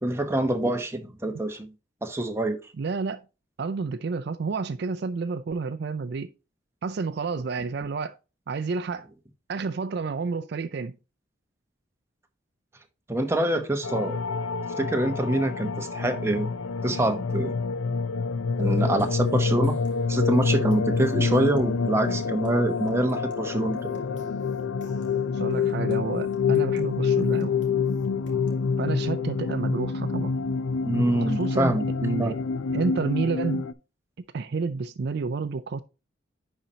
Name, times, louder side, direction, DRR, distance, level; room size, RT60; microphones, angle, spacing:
voice 1, 0.0-1.7 2.0-2.6 13.1-14.2 14.8-16.5 16.8-17.5 18.6-19.8 20.1-24.0 30.8-31.8 32.2-32.3, right 1 dB, 15° right, 0.8 m, -25 dB
voice 2, 2.8-3.2 3.6-6.3 6.8-8.2 8.5-9.1 9.5-11.0 25.3-27.5 28.8-30.3 31.2-31.7 32.0-32.4 32.7-33.7 34.3-35.8, right 4 dB, 55° right, 0.4 m, -30 dB
sound 1, 13.8-33.7, left 5 dB, 90° left, 0.5 m, -27 dB
sound 2, 18.5-28.7, left 2 dB, 65° left, 1.8 m, -45 dB
10.5 x 4.3 x 2.8 m
head